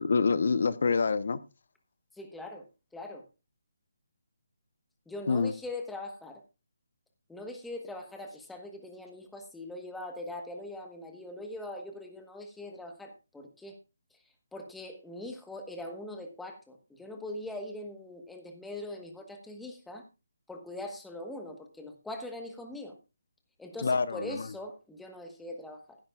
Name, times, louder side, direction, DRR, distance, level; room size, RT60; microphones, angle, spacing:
voice 1, 0.0-1.4 5.3-5.5 23.8-24.5, left 5 dB, 55° left, 0.9 m, -26 dB
voice 2, 2.2-2.7 2.9-3.2 5.1-6.4 7.3-13.8 14.5-20.0 20.5-23.0 23.6-26.0, left 1 dB, 5° left, 1.2 m, -42 dB
15.5 x 12.0 x 2.4 m
hypercardioid pair, 170°, 0 cm